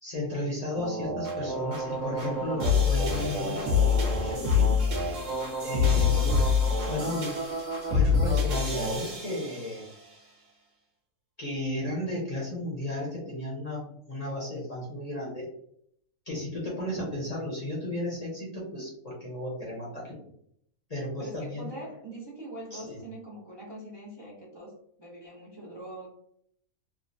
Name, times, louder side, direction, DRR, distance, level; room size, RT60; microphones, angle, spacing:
voice 1, 0.0-4.7 5.6-6.4 6.8-7.4 7.9-9.9 11.4-15.5 16.3-20.2 20.9-21.7 22.7-23.0, left 1 dB, 35° left, -5 dB, 0.7 m, -34 dB
sound 1, 0.8-10.0, left 4 dB, 65° right, 1.4 m, -26 dB
voice 2, 5.9-6.5 21.2-26.1, right 1 dB, 30° right, -6 dB, 0.4 m, -42 dB
3.6 x 2.1 x 2.6 m, 0.68 s
omnidirectional pair, 1.6 m